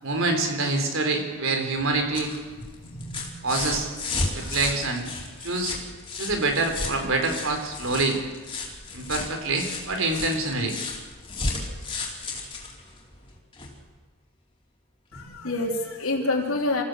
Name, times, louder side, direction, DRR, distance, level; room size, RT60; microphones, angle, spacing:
voice 1, 0.0-2.3 3.4-3.9 4.3-5.1 5.4-5.8 6.2-8.2 8.9-10.8, right 3 dB, 65° right, 5 dB, 4.1 m, -26 dB
sound 1, 1.8-13.8 15.1-15.2, left 3 dB, 25° left, 4.1 m, -34 dB
voice 2, 2.8-3.3 4.4-4.6 15.1-16.8, left 2 dB, 75° left, 0 dB, 3.1 m, -28 dB
27.5 x 15.5 x 8.2 m, 1.3 s
head